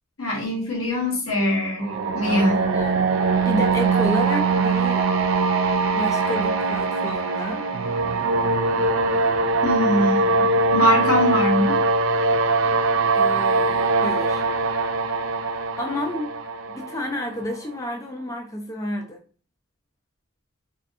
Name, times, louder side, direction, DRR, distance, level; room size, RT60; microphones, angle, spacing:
voice 1, 0.2-2.7 9.6-11.8, equal, 80° left, -2 dB, 1.0 m, -23 dB
sound 1, 1.8-17.6, right 3 dB, 65° right, 0.3 m, -22 dB
voice 2, 2.3-3.2 3.5-5.0 5.9-7.7 13.1-14.4 15.8-16.3 16.7-19.2, left 1 dB, 15° left, 3 dB, 0.4 m, -30 dB
2.6 x 2.4 x 2.3 m, 0.39 s
head